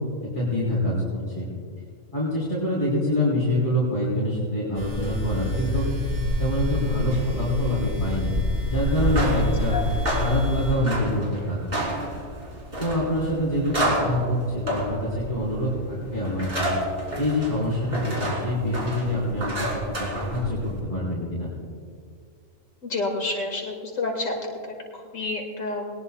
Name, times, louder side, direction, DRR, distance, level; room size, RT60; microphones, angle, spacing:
voice 1, 0.2-1.5 2.1-5.9 6.4-8.3 8.7-9.8 10.2-12.1 12.8-16.8 17.2-19.5 20.0-21.5, equal, 25° left, -9 dB, 3.6 m, -26 dB
sound 1, 4.7-10.7, left 1 dB, 85° right, 3.5 m, -27 dB
sound 2, 8.9-20.8, right 1 dB, 45° right, 3.2 m, -31 dB
voice 2, 22.8-24.3 24.9-25.9, left 3 dB, 90° left, 0 dB, 2.4 m, -29 dB
20.5 x 19.5 x 2.3 m, 2.2 s
omnidirectional pair, 1.3 m